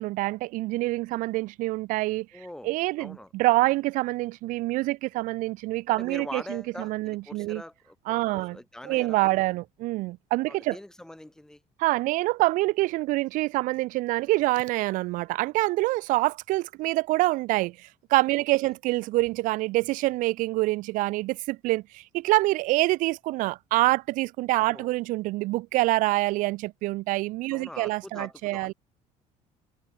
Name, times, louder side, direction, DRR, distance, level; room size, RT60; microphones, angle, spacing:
voice 1, 0.0-7.6 8.1-8.6 8.8-10.8 11.8-28.7, right 20 dB, 75° right, 0.5 m, -26 dB
voice 2, 2.3-2.7 3.0-3.3 6.0-9.4 10.5-11.6 18.4-18.7 24.6-24.9 27.5-28.7, left 1 dB, 5° left, 1.0 m, -43 dB
cardioid pair, 125°, 14 cm